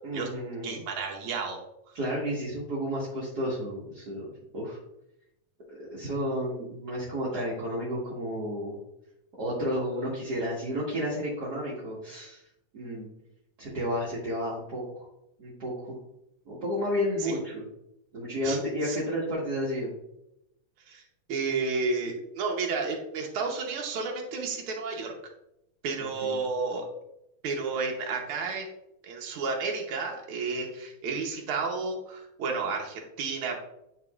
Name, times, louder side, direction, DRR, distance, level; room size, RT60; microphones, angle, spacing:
voice 1, 0.0-0.8 1.9-4.8 5.7-8.8 9.4-12.4 12.7-13.1 13.6-14.8 15.4-15.9 16.5-17.6 18.1-19.9 26.0-26.4, equal, 45° right, -7 dB, 1.3 m, -32 dB
voice 2, 0.6-1.6 17.2-17.4 18.4-19.0 20.9-21.0 21.3-25.1 25.8-26.8 27.4-28.7 29.0-33.6, right 4 dB, 80° right, 1 dB, 1.2 m, -31 dB
9.8 x 4.1 x 2.4 m, 0.83 s
omnidirectional pair, 3.6 m